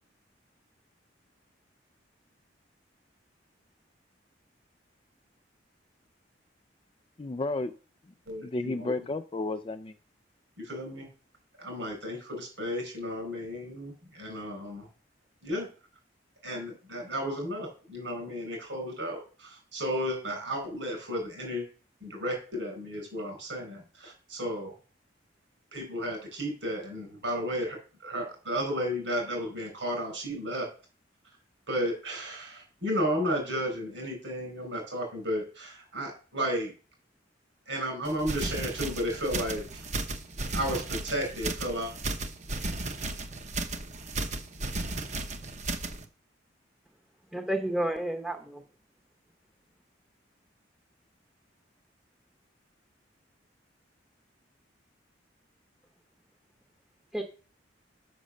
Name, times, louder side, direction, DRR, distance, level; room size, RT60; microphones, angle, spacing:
voice 1, 7.2-7.7 8.4-9.9, left 2 dB, 30° left, 9 dB, 0.4 m, -32 dB
voice 2, 8.3-8.9 10.6-11.1 11.6-14.9 15.4-15.7 16.4-21.6 22.0-24.7 25.7-30.7 31.7-36.7 37.7-39.6 40.5-41.9, equal, 80° right, 2 dB, 4.8 m, -33 dB
sound 1, 38.1-46.0, right 2 dB, 40° right, 0.9 m, -35 dB
voice 3, 47.3-48.6 57.1-57.2, right 1 dB, 5° right, 2 dB, 0.9 m, -30 dB
6.7 x 6.1 x 6.4 m, 0.37 s
head